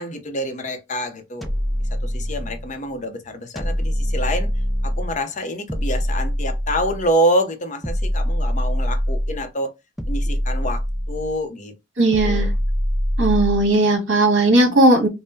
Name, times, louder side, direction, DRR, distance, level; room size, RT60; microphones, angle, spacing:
voice 1, 0.0-1.5 2.0-4.5 4.8-9.7 10.1-11.7 12.1-12.5 14.6-14.8, equal, 40° left, 0.7 m, -26 dB
sound 1, 1.4-2.7 3.6-5.2 5.7-7.1 7.8-9.4 10.0-11.4 12.1-13.7, equal, ahead, 0.5 m, -23 dB
voice 2, 12.0-12.5 13.2-15.1, right 2 dB, 75° right, 1.9 m, -16 dB
5.4 x 2.1 x 2.7 m
head